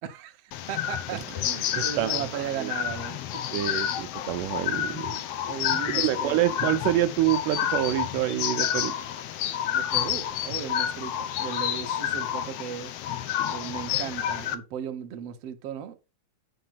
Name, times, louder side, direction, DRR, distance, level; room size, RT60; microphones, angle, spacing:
voice 1, 0.0-3.4 5.4-6.4 9.7-12.9 13.5-16.0, right 8 dB, 60° right, 1.8 m, -36 dB
sound 1, 0.5-14.5, left 10 dB, 90° left, 1.3 m, -29 dB
voice 2, 1.8-2.7 3.5-5.2 6.0-8.9, right 13 dB, 80° right, 2.1 m, -27 dB
9.1 x 4.3 x 5.6 m
omnidirectional pair, 3.8 m